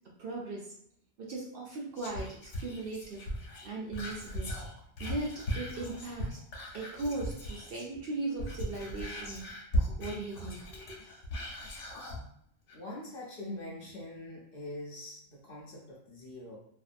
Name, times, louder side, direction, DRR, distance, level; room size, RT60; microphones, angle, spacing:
voice 1, 0.2-0.7 1.3-3.3 3.6-4.5 5.0-6.4 6.7-9.4 9.9-11.0, right 2 dB, 60° right, -3 dB, 0.6 m, -38 dB
Whispering, 2.0-8.0 8.3-12.2 12.7-12.8, equal, 80° left, 1.0 m, -37 dB
voice 2, 12.7-16.6, left 1 dB, 60° left, -3 dB, 0.7 m, -43 dB
2.6 x 2.1 x 2.4 m, 0.69 s
omnidirectional pair, 1.3 m